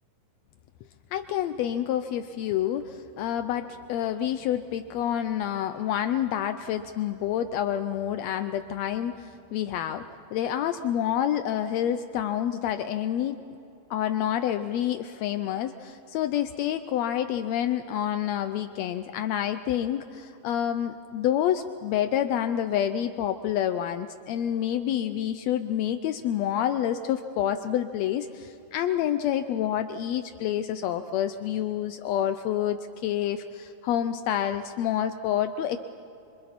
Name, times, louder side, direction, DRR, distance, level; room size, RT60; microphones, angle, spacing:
voice 1, 1.1-10.0 10.3-13.4 13.9-35.8, left 10 dB, 85° left, 9 dB, 1.5 m, -28 dB
26.0 x 26.0 x 4.2 m, 2.9 s
omnidirectional pair, 3.7 m